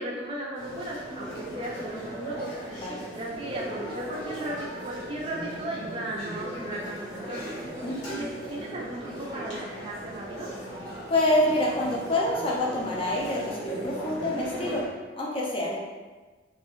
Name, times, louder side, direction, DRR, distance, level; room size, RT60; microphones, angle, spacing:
voice 1, 0.0-2.6 3.1-7.6 8.0-10.5, right 1 dB, 30° right, -3 dB, 0.4 m, -36 dB
sound 1, 0.5-14.9, right 1 dB, 80° left, 1.0 m, -38 dB
voice 2, 7.8-8.2 11.1-14.8 15.2-15.8, left 1 dB, 30° left, -4 dB, 0.4 m, -27 dB
2.4 x 2.1 x 3.0 m, 1.3 s
head